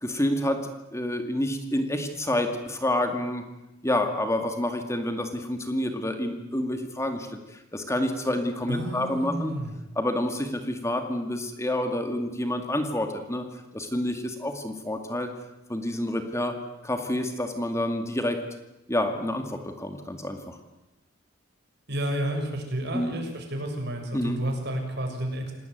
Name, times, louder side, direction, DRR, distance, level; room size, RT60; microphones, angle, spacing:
voice 1, 0.0-0.6 0.9-3.4 3.8-9.5 10.0-13.4 13.7-15.3 15.7-16.6 16.8-18.4 18.9-20.6 22.9-23.1 24.1-24.4, left 1 dB, 15° left, 6 dB, 2.2 m, -28 dB
voice 2, 8.7-9.7 21.9-25.5, right 1 dB, 55° right, 3 dB, 6.9 m, -31 dB
28.0 x 19.0 x 9.4 m, 0.97 s
head